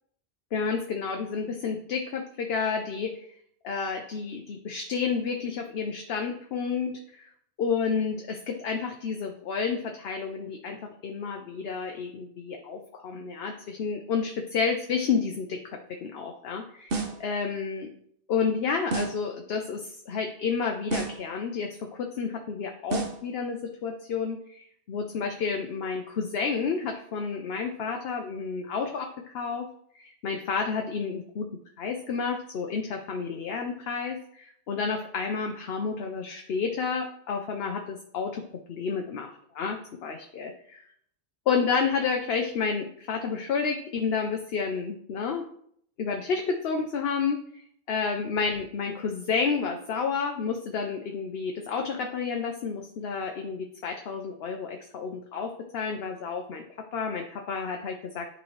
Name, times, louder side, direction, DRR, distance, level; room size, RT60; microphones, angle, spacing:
voice 1, 0.5-3.1 3.6-7.3 7.6-17.9 18.3-29.7 30.0-31.5 31.8-38.4 38.7-40.9 41.5-45.4 46.0-47.4 47.9-58.3, left 5 dB, 65° left, 3 dB, 0.9 m, -30 dB
sound 1, 16.9-17.3 18.9-19.3 20.9-21.3 22.9-23.3, right 4 dB, 60° right, 1.2 m, -31 dB
9.6 x 4.3 x 3.2 m, 0.64 s
omnidirectional pair, 1.1 m